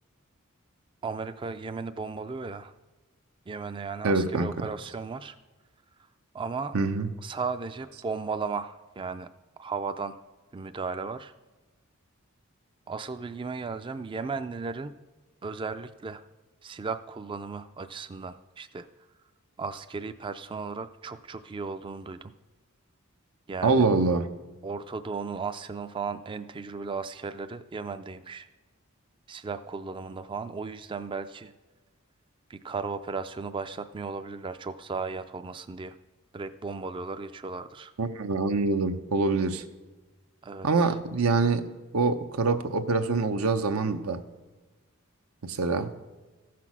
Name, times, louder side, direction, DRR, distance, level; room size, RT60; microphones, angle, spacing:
voice 1, 1.0-2.7 3.5-5.4 6.3-6.8 7.2-9.3 9.6-10.2 10.5-11.3 12.9-14.9 15.4-16.2 16.6-18.9 19.6-22.3 23.5-23.9 24.6-28.5 29.3-31.5 32.5-36.0 36.3-37.9 40.4-40.8, right 4 dB, 25° right, 10 dB, 0.3 m, -35 dB
voice 2, 4.0-4.7 6.7-7.1 23.6-24.3 38.0-39.6 40.6-44.2 45.4-45.9, right 3 dB, 85° right, 9 dB, 0.7 m, -25 dB
14.5 x 5.9 x 6.0 m, 1.2 s
head